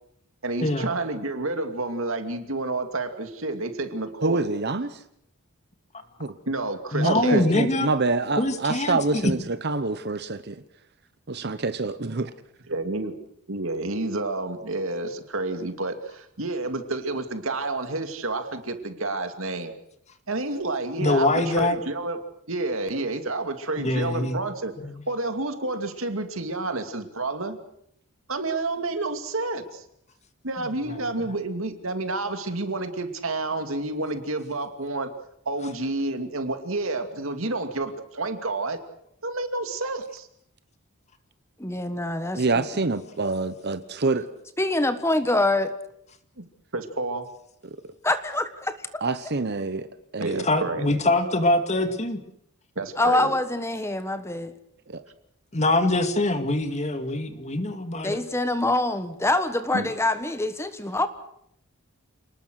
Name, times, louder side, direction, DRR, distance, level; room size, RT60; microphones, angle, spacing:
voice 1, 0.4-4.4 6.5-7.4 12.7-13.1 13.5-19.7 20.3-22.2 22.5-24.7 25.1-27.6 28.3-29.8 30.4-35.1 35.5-38.8 39.2-40.3 46.4-46.5 46.7-47.3 50.2-50.9 52.8-53.3 59.7-59.9, right 2 dB, 65° right, 2.6 m, -29 dB
voice 2, 4.2-5.0 6.2-6.3 7.0-10.6 11.3-12.3 42.3-44.3 49.0-49.9 50.1-50.5 54.9-55.0, right 3 dB, 50° right, 1.0 m, -26 dB
voice 3, 6.9-7.9 8.4-9.3 21.0-21.8 23.8-24.4 24.8-25.0 30.9-31.0 50.4-52.2 55.5-58.2, left 2 dB, 30° left, 2.1 m, -24 dB
voice 4, 41.6-42.6 44.6-45.7 48.0-49.0 53.0-54.5 58.0-61.1, left 2 dB, 10° left, 1.3 m, -25 dB
29.0 x 19.5 x 6.5 m
head